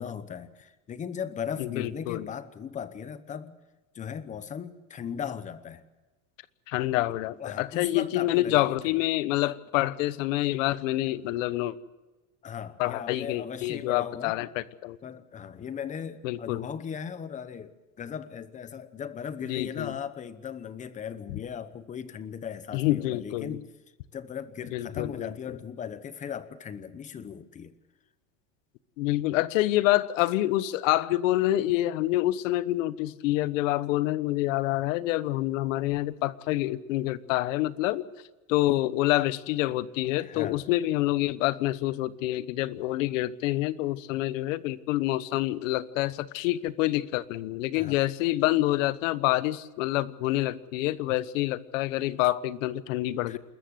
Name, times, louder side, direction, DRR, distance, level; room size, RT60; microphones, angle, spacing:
voice 1, 0.0-3.6 3.9-5.8 7.1-9.0 12.4-14.4 15.0-23.7 24.1-27.7 40.2-40.6 47.8-48.0 53.3-53.4, left 7 dB, 20° left, 1.0 m, -38 dB
voice 2, 1.6-2.3 6.7-11.7 12.8-15.0 16.2-16.7 19.5-19.9 22.7-23.6 24.7-25.3 29.0-38.1 38.5-53.4, left 16 dB, 80° left, 1.2 m, -27 dB
28.0 x 14.0 x 8.0 m
cardioid pair, 165°, 38 cm